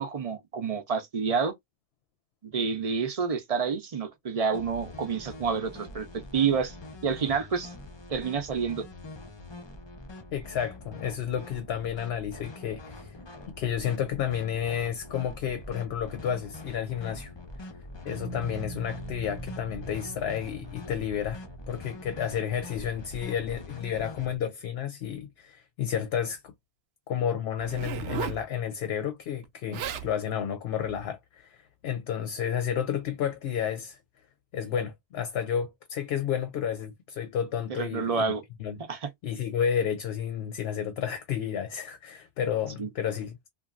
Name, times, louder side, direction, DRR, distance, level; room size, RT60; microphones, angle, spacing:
voice 1, 0.0-1.5 2.4-6.1 6.3-6.8 7.0-7.7 8.1-8.8 37.7-38.4 38.9-39.1 42.8-42.9, right 5 dB, 40° right, 0.6 m, -28 dB
sound 1, 4.5-24.4, left 2 dB, 35° left, 0.5 m, -44 dB
voice 2, 10.3-13.1 13.6-17.3 18.0-26.5 27.1-34.0 34.5-38.2 38.6-38.8 39.2-43.5, left 8 dB, 70° left, 0.8 m, -31 dB
sound 2, 18.1-23.0, equal, 65° right, 1.1 m, -42 dB
Zipper (clothing), 27.6-28.4 29.4-29.5 29.7-30.1 30.8-31.0, right 8 dB, 85° right, 0.9 m, -35 dB
2.9 x 2.4 x 2.4 m
omnidirectional pair, 1.1 m